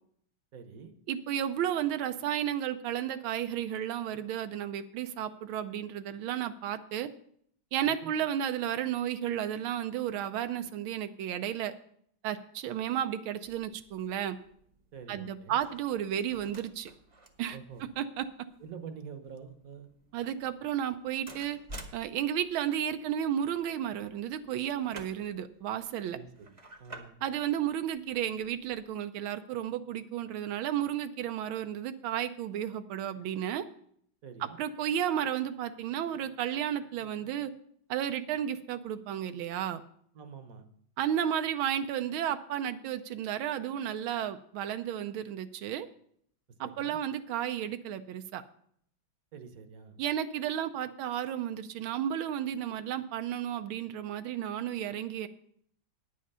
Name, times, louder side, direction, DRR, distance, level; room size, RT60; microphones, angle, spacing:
voice 1, 0.5-0.9 7.8-8.1 14.9-15.6 17.5-17.8 18.6-19.9 26.1-27.2 34.2-34.6 40.1-40.6 46.6-47.0 49.3-50.0, right 6 dB, 55° right, 8 dB, 1.1 m, -46 dB
voice 2, 1.1-7.1 7.7-11.7 12.2-14.4 15.1-16.9 17.4-17.6 18.0-18.3 20.1-21.6 21.9-26.2 27.2-33.7 34.4-37.5 37.9-39.8 41.0-45.9 46.6-48.4 50.0-55.3, right 10 dB, 90° right, 9 dB, 1.5 m, -33 dB
sound 1, 13.4-28.9, right 1 dB, 25° right, 0.7 m, -53 dB
9.6 x 8.7 x 5.5 m, 0.65 s
omnidirectional pair, 2.2 m